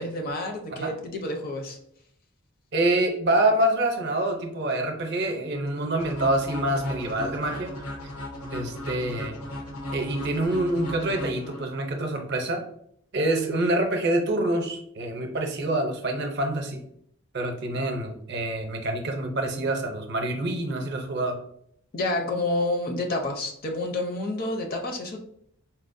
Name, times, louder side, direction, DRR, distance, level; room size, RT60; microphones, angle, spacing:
voice 1, 0.0-1.8 21.9-25.2, left 2 dB, 45° left, 3 dB, 0.5 m, -29 dB
voice 2, 2.7-7.7 8.4-9.3 9.9-12.6 13.1-16.8 17.3-21.4, right 1 dB, 50° right, 3 dB, 0.6 m, -26 dB
sound 1, 6.0-11.9, left 1 dB, 90° left, 0.9 m, -37 dB
4.1 x 2.0 x 2.5 m, 0.68 s
head